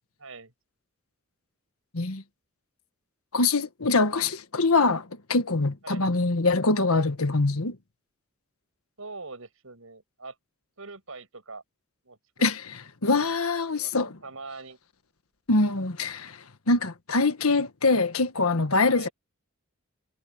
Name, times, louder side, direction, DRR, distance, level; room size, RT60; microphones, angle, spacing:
voice 1, 0.2-0.5 5.8-6.0 9.0-10.3 10.8-11.6 12.0-12.5 13.2-13.4 13.7-14.8 18.9-19.1, right 3 dB, 75° right, 6.7 m, -43 dB
voice 2, 3.3-7.7 12.4-12.6 13.0-14.2 15.5-16.4 16.7-19.1, left 3 dB, 90° left, 1.5 m, -24 dB
head